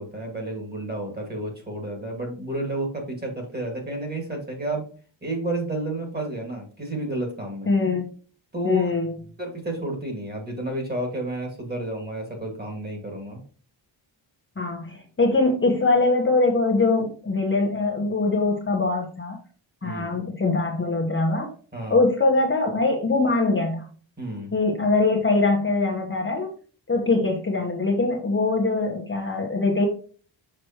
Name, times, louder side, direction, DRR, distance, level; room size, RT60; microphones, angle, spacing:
voice 1, 0.0-4.8 5.2-7.7 8.5-8.9 9.4-13.4 19.8-20.2 21.7-22.0 24.2-24.5, right 1 dB, 20° right, 2 dB, 2.2 m, -31 dB
voice 2, 7.7-8.0 8.6-9.1 14.6-19.4 19.8-21.5 21.9-23.9 24.5-26.5 26.9-29.9, left 3 dB, 25° left, -1 dB, 1.1 m, -22 dB
6.5 x 6.0 x 3.0 m, 0.41 s
wide cardioid pair, 160°, 47 cm